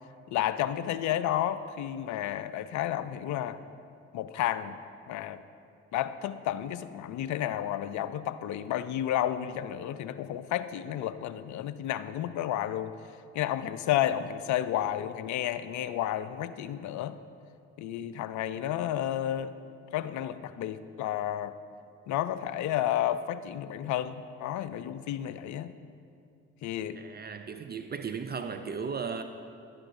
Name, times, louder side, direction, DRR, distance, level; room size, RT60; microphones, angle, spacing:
voice 1, 0.3-3.6 4.1-4.8 5.1-5.4 5.9-12.9 13.3-17.2 17.8-19.5 19.9-21.5 22.1-25.7 26.6-27.0, left 11 dB, 55° left, 13 dB, 0.5 m, -31 dB
voice 2, 26.9-29.2, right 6 dB, 30° right, 8 dB, 0.5 m, -36 dB
11.0 x 9.7 x 2.7 m, 2.4 s
hypercardioid pair, 45°, 35 cm